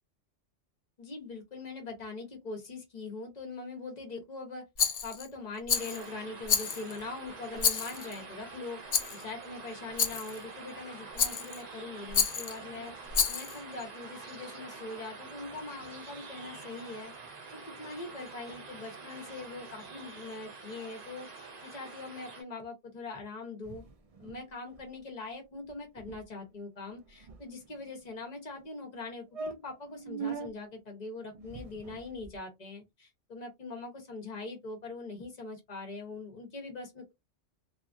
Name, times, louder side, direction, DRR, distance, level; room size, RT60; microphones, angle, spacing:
voice 1, 1.0-8.8 9.1-17.1 17.5-23.8 24.2-37.1, left 3 dB, 40° left, 0.9 m, -42 dB
Rattle, 4.8-5.3 5.7-6.0 6.5-7.0 7.6-8.2 8.9-9.2 10.0-10.4 11.2-11.6 12.1-12.6 13.1-13.6, left 7 dB, 55° left, 0.4 m, -29 dB
sound 1, 5.7-22.4, right 4 dB, 40° right, 0.7 m, -46 dB
sound 2, 23.6-24.5 24.7-24.9 25.2-25.4 25.7-25.8 26.0-26.2 26.8-27.9 28.6-28.7 29.0-29.1 29.3-30.5 31.3-32.4, right 5 dB, 65° right, 0.3 m, -42 dB
2.9 x 2.3 x 2.5 m
omnidirectional pair, 1.2 m